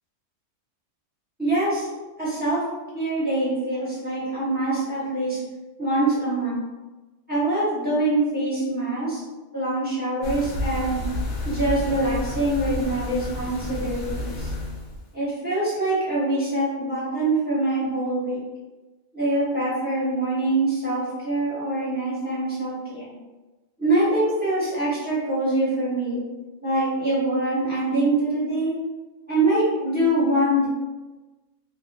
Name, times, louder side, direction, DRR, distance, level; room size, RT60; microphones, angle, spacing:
voice 1, 1.4-1.9 2.2-2.6 2.9-5.4 5.8-6.6 7.3-9.2 9.5-11.0 11.4-14.5 15.1-18.4 19.1-23.1 23.8-26.2 26.6-28.8 29.3-30.7, right 1 dB, 10° right, -11 dB, 1.3 m, -24 dB
sound 1, 10.2-15.0, left 1 dB, 55° left, 0.5 m, -30 dB
3.0 x 2.5 x 2.6 m, 1.2 s
omnidirectional pair, 1.3 m